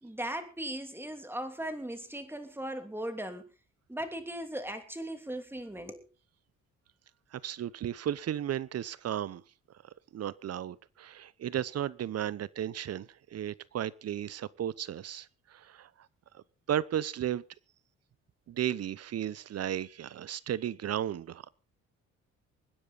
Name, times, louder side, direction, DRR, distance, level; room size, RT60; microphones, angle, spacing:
voice 1, 0.0-3.4 3.9-6.1, right 1 dB, 5° right, 2.9 m, -38 dB
voice 2, 7.3-9.4 10.1-15.9 16.3-17.4 18.5-21.5, right 10 dB, 55° right, 0.8 m, -34 dB
24.5 x 10.0 x 4.0 m
cardioid pair, 90°, 30 cm